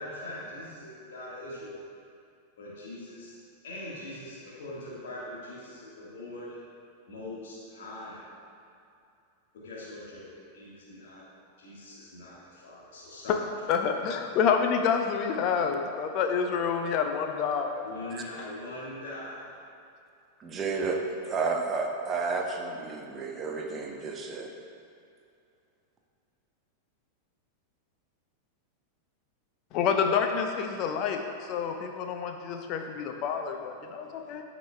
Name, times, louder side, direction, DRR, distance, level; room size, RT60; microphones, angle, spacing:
voice 1, 0.0-1.8 2.6-3.4 3.6-6.6 7.1-8.2 9.5-11.2 11.6-13.4 17.8-19.5, left 1 dB, 60° left, -7 dB, 1.6 m, -42 dB
voice 2, 13.7-17.8 29.7-31.2 31.5-34.4, left 6 dB, 40° left, 4 dB, 0.6 m, -28 dB
voice 3, 20.4-21.0 21.2-24.5, right 4 dB, 25° right, 2 dB, 0.8 m, -31 dB
13.5 x 4.9 x 2.3 m, 2.6 s
figure-of-eight pair, 90°, 0 cm